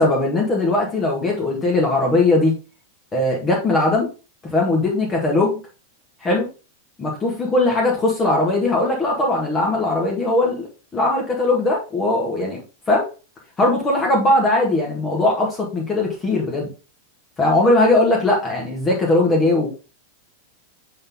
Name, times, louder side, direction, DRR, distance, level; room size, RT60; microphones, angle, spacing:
voice 1, 0.0-2.6 3.1-4.1 4.4-5.6 6.2-6.5 7.0-10.7 10.9-12.6 12.9-13.1 13.6-16.7 17.4-19.7, left 2 dB, 20° left, -2 dB, 1.9 m, -19 dB
7.6 x 4.1 x 3.6 m, 0.32 s
figure-of-eight pair, 90°, 0 cm